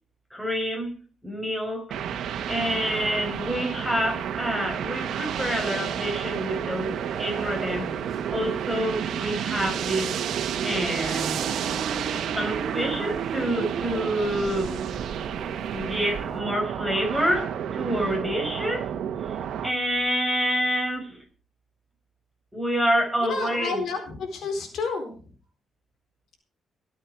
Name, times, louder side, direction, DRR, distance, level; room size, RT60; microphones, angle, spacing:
voice 1, 0.3-1.0 1.2-2.0 2.5-7.9 8.3-10.1 10.6-11.4 12.3-14.8 15.7-18.9 19.3-19.4 19.6-21.2 22.5-23.8, equal, 5° left, 5.0 m, -27 dB
sound 1, 1.9-19.7, right 9 dB, 80° right, 1.5 m, -31 dB
sound 2, 2.6-16.4, right 6 dB, 50° right, 1.6 m, -37 dB
voice 2, 23.2-25.1, left 4 dB, 70° left, 4.1 m, -30 dB
22.5 x 8.7 x 4.7 m
cardioid pair, 135°, 0 cm